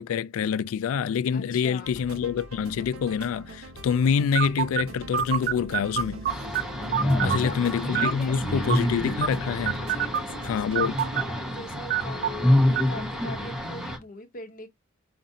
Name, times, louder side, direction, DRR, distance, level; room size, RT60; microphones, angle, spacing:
voice 1, 0.0-6.2 7.2-9.8 10.4-11.0, left 7 dB, 70° left, 0.3 m, -26 dB
voice 2, 1.3-1.9 6.8-7.6 7.8-8.6 9.9-14.7, left 2 dB, 40° left, 0.9 m, -41 dB
sound 1, 1.8-11.2, right 1 dB, 80° right, 1.2 m, -43 dB
sound 2, 4.4-13.9, right 9 dB, 45° right, 0.4 m, -31 dB
sound 3, 6.3-14.0, left 1 dB, ahead, 0.8 m, -27 dB
5.2 x 2.5 x 2.7 m
head